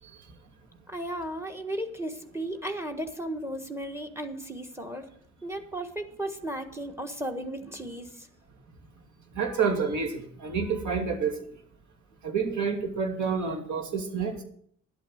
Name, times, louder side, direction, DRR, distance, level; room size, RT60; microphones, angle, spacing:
voice 1, 0.9-5.1 5.4-8.3, right 1 dB, 10° right, 6 dB, 1.5 m, -35 dB
voice 2, 9.3-11.4 12.2-14.3, right 5 dB, 80° right, 3 dB, 2.8 m, -28 dB
12.0 x 8.4 x 6.5 m, 0.63 s
cardioid pair, 85°, 29 cm